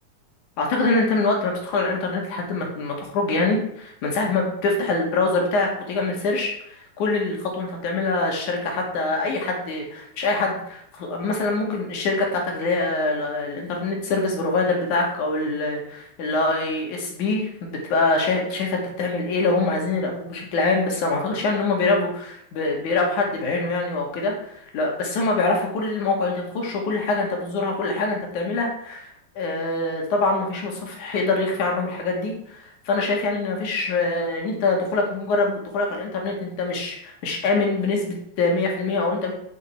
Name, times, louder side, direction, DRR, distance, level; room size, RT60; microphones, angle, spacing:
voice 1, 0.6-29.1 29.3-39.3, left 3 dB, 85° left, 0 dB, 3.6 m, -24 dB
10.0 x 7.2 x 4.6 m, 0.73 s
omnidirectional pair, 3.4 m